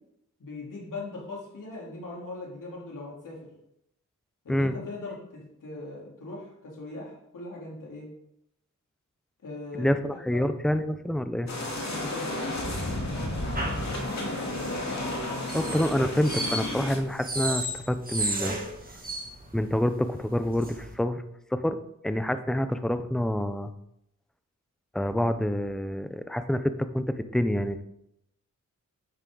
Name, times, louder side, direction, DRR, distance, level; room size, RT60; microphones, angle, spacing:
voice 1, 0.4-3.4 4.4-8.1 9.4-10.0 10.3-10.5 11.9-12.5, left 2 dB, 85° left, -4 dB, 3.5 m, -40 dB
voice 2, 9.8-11.5 15.5-18.6 19.5-21.2 21.5-21.8 22.0-23.7 24.9-27.8, left 1 dB, ahead, 10 dB, 0.6 m, -27 dB
sound 1, 11.5-17.0, left 1 dB, 60° left, 2.3 m, -32 dB
sound 2, 13.5-21.0, right 1 dB, 30° right, 2.1 m, -35 dB
10.0 x 8.0 x 3.9 m, 0.80 s
wide cardioid pair, 95°, 31 cm